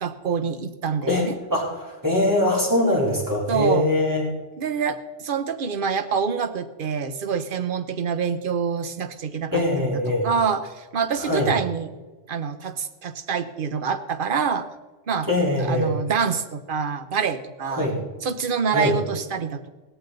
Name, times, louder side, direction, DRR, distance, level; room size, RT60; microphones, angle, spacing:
voice 1, 0.0-1.4 3.5-3.9 4.6-9.9 10.2-11.9 12.3-14.7 15.1-15.3 15.6-17.9 18.2-19.7, right 6 dB, 55° right, 10 dB, 1.0 m, -26 dB
voice 2, 1.5-4.2 9.5-10.3 11.2-11.5 15.3-15.9 17.7-18.0 18.7-18.9, left 1 dB, 15° right, -4 dB, 3.9 m, -22 dB
17.0 x 14.0 x 4.0 m, 1.2 s
omnidirectional pair, 1.1 m